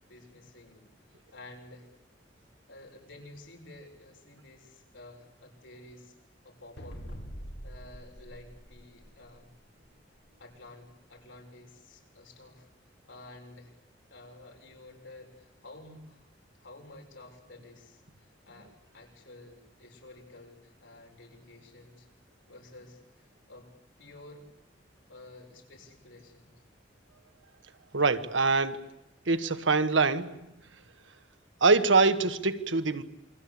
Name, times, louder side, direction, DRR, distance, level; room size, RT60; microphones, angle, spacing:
voice 1, 0.1-1.9 2.7-6.1 6.4-7.0 7.6-9.5 10.4-12.7 13.0-13.7 14.1-16.3 16.5-22.1 22.5-23.7 24.0-24.5 25.1-26.5, left 2 dB, 80° left, 7.0 m, -51 dB
sound 1, 6.8-9.5, equal, 65° left, 4.4 m, -44 dB
voice 2, 27.9-28.8 29.3-30.4 31.6-33.0, right 3 dB, 85° right, 1.6 m, -24 dB
28.0 x 22.5 x 8.6 m
head